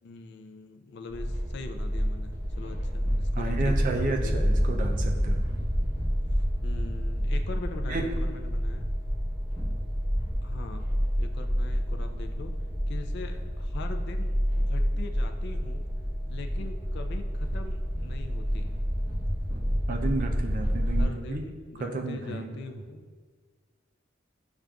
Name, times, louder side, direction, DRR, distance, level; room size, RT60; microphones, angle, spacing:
voice 1, 0.0-4.5 6.6-8.9 10.4-10.9 11.2-12.5 12.9-15.9 16.3-18.8 21.0-23.1, left 3 dB, 60° left, 6 dB, 0.3 m, -42 dB
sound 1, 1.1-21.0, equal, 15° right, 1.1 m, -28 dB
voice 2, 3.4-5.4 7.9-8.1 19.9-21.4 21.8-22.5, right 3 dB, 45° right, 3 dB, 0.4 m, -31 dB
6.3 x 2.4 x 2.3 m, 1.5 s
head